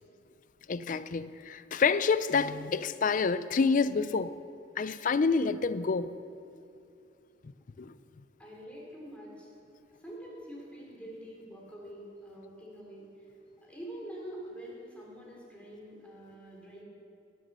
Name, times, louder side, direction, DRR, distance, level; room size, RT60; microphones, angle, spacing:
voice 1, 0.7-4.3 4.8-6.1 7.8-7.9, left 5 dB, 45° left, 0.4 m, -28 dB
voice 2, 8.4-9.5 10.0-13.3 13.6-16.8, right 1 dB, 5° left, 3.1 m, -45 dB
20.0 x 7.4 x 6.7 m
head